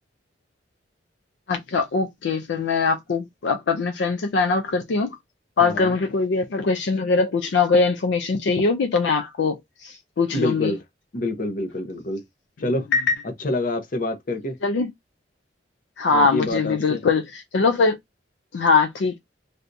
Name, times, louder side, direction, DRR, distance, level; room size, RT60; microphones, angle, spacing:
voice 1, 1.5-5.1 5.6-10.7 12.9-13.1 14.6-14.9 16.0-18.0 18.5-19.2, left 4 dB, 75° left, 0.4 m, -22 dB
voice 2, 5.6-5.9 10.3-10.8 11.1-12.2 12.6-12.9 13.2-14.6 16.1-17.0, left 1 dB, 50° left, 0.8 m, -27 dB
3.4 x 2.6 x 2.6 m
head